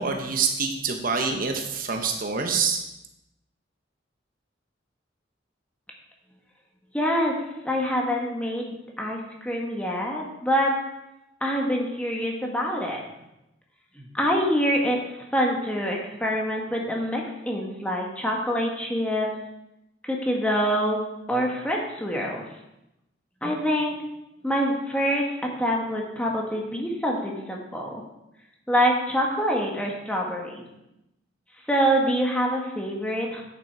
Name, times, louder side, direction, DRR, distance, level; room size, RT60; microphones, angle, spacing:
voice 1, 0.0-2.8, right 5 dB, 50° right, 4 dB, 0.9 m, -26 dB
voice 2, 6.9-7.4 7.6-10.7 11.4-13.0 13.9-19.3 20.0-21.0 21.3-22.4 23.4-23.9 24.4-28.0 28.7-30.6 31.7-33.4, equal, 5° left, -1 dB, 1.5 m, -25 dB
9.3 x 7.2 x 4.7 m, 0.88 s
head